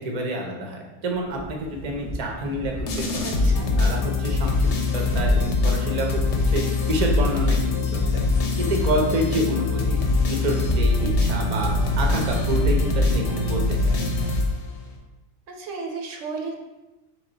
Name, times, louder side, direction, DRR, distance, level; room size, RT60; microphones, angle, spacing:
voice 1, 0.0-4.7 4.9-8.2 8.6-11.7 12.0-14.0, right 1 dB, 45° right, 1 dB, 0.6 m, -28 dB
sound 1, 1.1-13.8, equal, 5° right, 0.6 m, -35 dB
sound 2, 2.9-15.0, left 3 dB, 65° left, 0.9 m, -23 dB
voice 2, 3.2-3.7 15.5-16.6, right 4 dB, 75° right, 2 dB, 0.9 m, -34 dB
3.4 x 3.4 x 3.9 m, 1.0 s
omnidirectional pair, 1.3 m